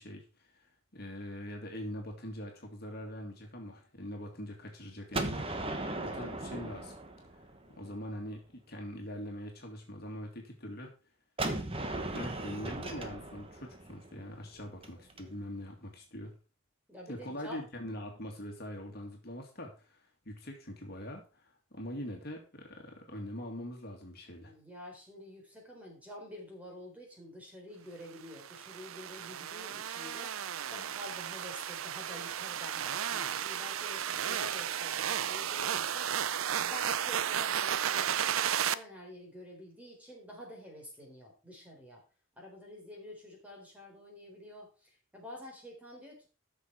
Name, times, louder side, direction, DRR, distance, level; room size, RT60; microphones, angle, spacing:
voice 1, 0.0-6.9 7.7-10.9 12.1-16.3 17.1-24.5, equal, 50° left, 1 dB, 2.2 m, -43 dB
Gunshot gunfire, 5.1-8.0 11.4-15.2, right 2 dB, 25° right, 1.4 m, -37 dB
voice 2, 16.9-17.6 24.4-36.1 36.5-42.0 42.4-46.3, left 1 dB, 5° right, -1 dB, 4.0 m, -48 dB
sound 1, 28.3-38.7, right 9 dB, 85° right, 0.6 m, -34 dB
13.5 x 6.5 x 4.5 m, 0.34 s
head